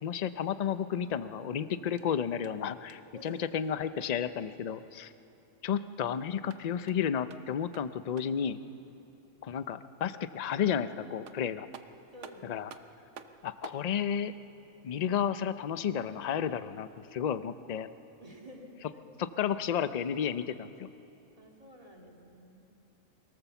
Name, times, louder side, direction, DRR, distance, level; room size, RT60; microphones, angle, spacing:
voice 1, 0.0-5.1 5.6-8.6 9.4-11.7 12.4-12.7 13.4-14.3 14.8-17.9 19.2-20.9, left 8 dB, 50° left, 13 dB, 0.5 m, -32 dB
sound 1, 2.0-3.2 6.3-8.5 10.8-10.9 11.3-13.9, right 7 dB, 65° right, 1.1 m, -52 dB
voice 2, 12.1-12.6 18.2-19.0 21.3-22.6, left 1 dB, 25° right, 0 dB, 2.4 m, -51 dB
24.0 x 17.5 x 7.1 m, 2.9 s
omnidirectional pair, 1.3 m